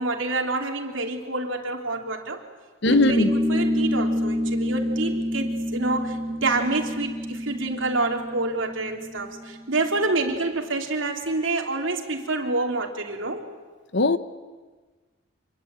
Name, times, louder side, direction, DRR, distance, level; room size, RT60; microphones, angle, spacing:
voice 1, 0.0-2.4 2.9-13.4, right 2 dB, 70° right, 3.1 m, -27 dB
voice 2, 2.8-3.3 13.9-14.2, left 2 dB, 60° left, 1.1 m, -19 dB
sound 1, 2.9-9.8, left 1 dB, 10° left, 3.2 m, -28 dB
26.0 x 22.0 x 8.9 m
head